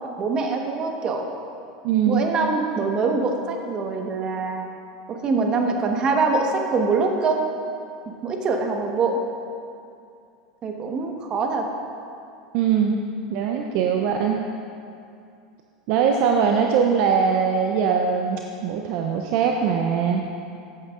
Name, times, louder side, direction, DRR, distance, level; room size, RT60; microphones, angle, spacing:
voice 1, 0.0-1.3 2.1-4.7 5.1-7.4 8.1-9.2 10.6-11.7, right 4 dB, 35° right, 3 dB, 1.3 m, -24 dB
voice 2, 1.8-2.2 12.5-13.0 13.3-14.4 15.9-20.2, right 6 dB, 60° right, 2 dB, 0.6 m, -21 dB
14.5 x 8.6 x 2.5 m, 2.5 s
hypercardioid pair, 90°, 2 cm